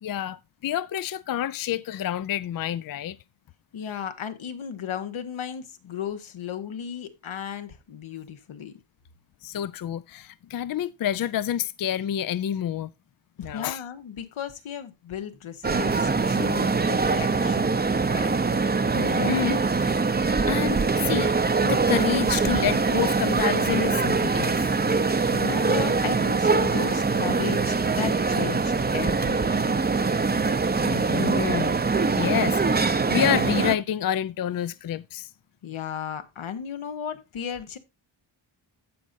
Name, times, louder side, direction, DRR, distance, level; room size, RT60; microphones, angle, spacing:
voice 1, 0.0-3.2 9.4-12.9 13.4-13.8 18.9-21.3 21.6-25.0 30.3-30.5 30.8-31.8 32.1-35.3, left 11 dB, 50° left, 0.5 m, -29 dB
voice 2, 3.7-8.7 13.4-17.7 18.1-18.3 24.9-25.0 25.3-29.8 35.6-37.8, left 8 dB, 80° left, 1.4 m, -35 dB
sound 1, 15.6-33.7, right 4 dB, 20° right, 0.7 m, -23 dB
15.5 x 5.2 x 2.7 m
wide cardioid pair, 115°, 48 cm